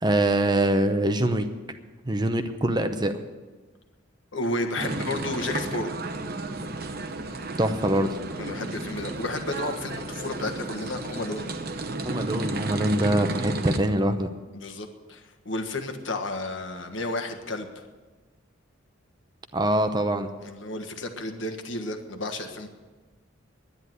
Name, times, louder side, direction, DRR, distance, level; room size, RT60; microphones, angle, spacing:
voice 1, 0.0-1.4 2.1-3.1 7.6-8.2 12.0-14.3 19.5-20.3, right 1 dB, 20° right, 8 dB, 0.7 m, -24 dB
voice 2, 4.3-5.9 8.3-11.5 14.5-17.9 20.4-22.7, left 2 dB, 70° left, 5 dB, 1.5 m, -32 dB
sound 1, 4.8-13.8, right 2 dB, 50° right, 0.9 m, -33 dB
11.0 x 10.0 x 9.4 m, 1.3 s
head